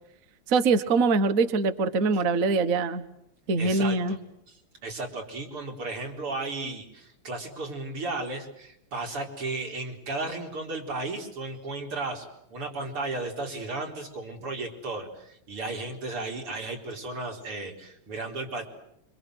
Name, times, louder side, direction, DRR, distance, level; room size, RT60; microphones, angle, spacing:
voice 1, 0.5-3.0 3.5-4.2, right 4 dB, 45° right, 11 dB, 1.6 m, -23 dB
voice 2, 3.6-4.2 4.5-18.7, right 2 dB, 90° right, 2 dB, 5.2 m, -34 dB
26.0 x 25.5 x 8.0 m, 0.78 s
omnidirectional pair, 2.4 m